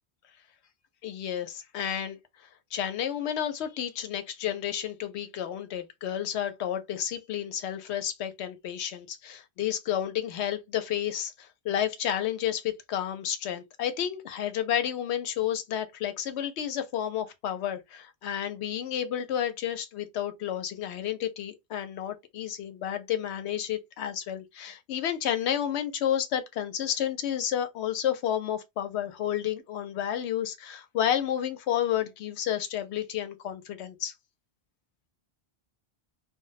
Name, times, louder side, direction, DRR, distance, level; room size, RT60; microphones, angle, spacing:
voice 1, 1.0-2.2 2.7-34.1, left 10 dB, 90° left, 0.9 m, -31 dB
2.2 x 2.1 x 3.8 m
omnidirectional pair, 1.1 m